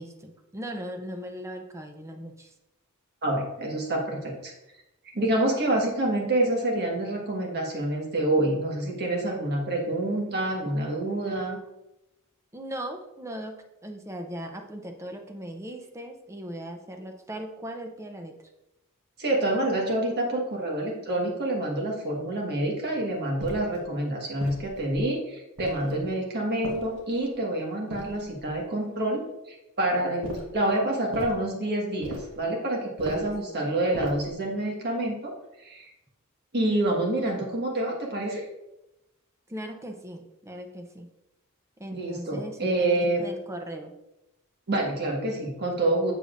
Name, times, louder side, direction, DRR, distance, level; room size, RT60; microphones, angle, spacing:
voice 1, 0.0-2.5 12.5-13.6 13.8-18.3 33.0-33.7 39.5-41.1 41.8-43.9, right 1 dB, 15° right, 4 dB, 0.6 m, -38 dB
voice 2, 3.2-4.5 5.1-11.6 19.2-35.3 35.6-35.9 36.5-38.4 41.9-43.2 44.7-46.1, right 1 dB, 50° right, -1 dB, 1.4 m, -27 dB
sound 1, 23.4-23.8 24.4-25.0 25.6-26.1 26.6-27.3 27.9-28.6 30.2-30.6 31.1-31.4 32.0-32.4 33.0-33.4 33.9-34.4, equal, 75° right, 1.3 m, -38 dB
6.9 x 6.7 x 2.5 m, 0.93 s
head